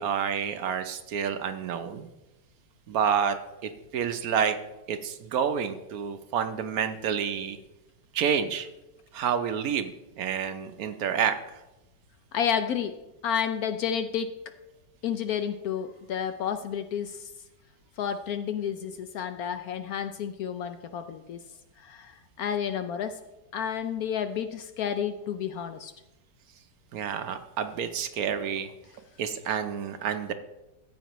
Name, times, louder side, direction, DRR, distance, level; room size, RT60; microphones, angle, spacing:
voice 1, 0.0-2.1 2.9-3.4 3.6-4.6 4.9-7.6 8.1-8.7 9.1-11.6 26.9-28.7 29.2-30.3, right 7 dB, 65° right, 9 dB, 0.9 m, -29 dB
voice 2, 12.3-13.0 13.2-14.4 15.0-17.3 18.0-21.4 21.8-23.2 23.5-25.9, left 8 dB, 75° left, 9 dB, 0.8 m, -31 dB
14.0 x 8.3 x 3.0 m, 0.97 s
omnidirectional pair, 2.0 m